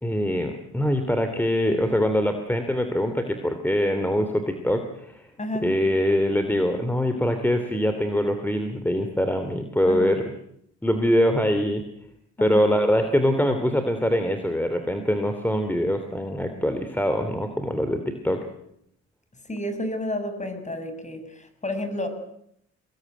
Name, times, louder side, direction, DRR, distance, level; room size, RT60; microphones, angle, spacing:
voice 1, 0.0-5.3 5.6-10.3 10.8-11.8 12.4-18.5, equal, 5° left, 7 dB, 2.9 m, -23 dB
voice 2, 5.4-5.7 9.9-10.1 12.4-12.6 19.5-22.1, left 1 dB, 25° left, 8 dB, 6.6 m, -31 dB
24.0 x 20.5 x 9.2 m, 0.74 s
cardioid pair, 90°, 30 cm